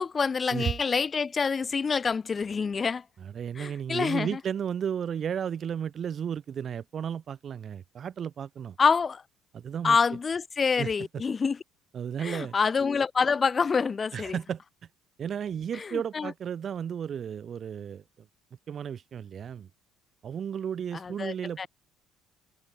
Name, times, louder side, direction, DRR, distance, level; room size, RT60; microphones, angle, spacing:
voice 1, 0.0-3.0 3.6-4.4 8.8-9.2 9.8-11.6 12.2-14.4 15.8-16.3 21.0-21.7, left 5 dB, 35° left, 0.3 m, -27 dB
voice 2, 3.2-8.8 9.5-10.2 10.8-10.9 11.9-12.5 14.1-14.6 15.2-18.0 18.7-19.7 20.2-21.7, right 8 dB, 45° right, 1.4 m, -33 dB
hypercardioid pair, 55°, 0 cm